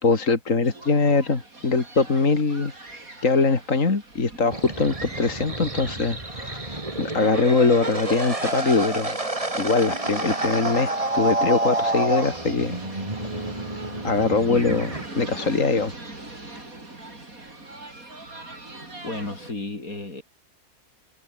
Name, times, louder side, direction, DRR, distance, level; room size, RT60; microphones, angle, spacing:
voice 1, 0.0-2.7 3.2-9.2 9.5-12.8 13.3-13.5 14.0-14.9 15.2-15.9, left 4 dB, 65° left, 3.1 m, -22 dB
sound 1, 0.6-19.5, right 2 dB, 85° right, 6.3 m, -42 dB
sound 2, 4.5-15.1, right 2 dB, 25° right, 2.6 m, -29 dB
voice 2, 14.5-14.8 19.0-20.2, left 2 dB, 85° left, 5.9 m, -33 dB
omnidirectional pair, 1.4 m